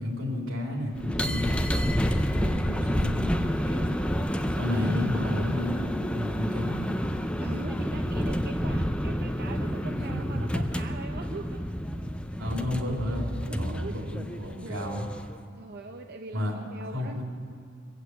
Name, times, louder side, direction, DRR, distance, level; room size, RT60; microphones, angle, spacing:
voice 1, 0.0-1.6 2.4-3.3 3.6-3.9 4.5-5.8 6.1-6.9 9.9-10.5 12.4-15.1 16.3-16.5 16.9-17.2, left 1 dB, 90° right, -1 dB, 3.6 m, -32 dB
sound 1, 0.9-15.4, equal, 5° left, 0.5 m, -29 dB
voice 2, 2.3-2.7 4.8-5.1 7.4-11.7 13.5-14.1 14.6-14.9 15.6-17.2, right 3 dB, 50° right, 4 dB, 0.6 m, -42 dB
21.5 x 8.1 x 8.3 m, 2.6 s
head